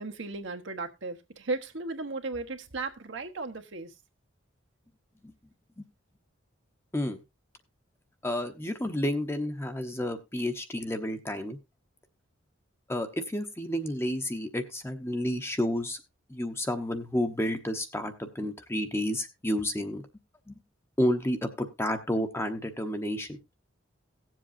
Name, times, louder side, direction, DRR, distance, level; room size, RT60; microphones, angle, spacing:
voice 1, 0.0-3.9, right 3 dB, 65° right, 1.2 m, -35 dB
voice 2, 8.2-11.6 12.9-16.0 16.3-20.0 20.5-20.6 21.0-23.4, left 1 dB, 15° left, 0.9 m, -30 dB
18.0 x 7.6 x 2.7 m
head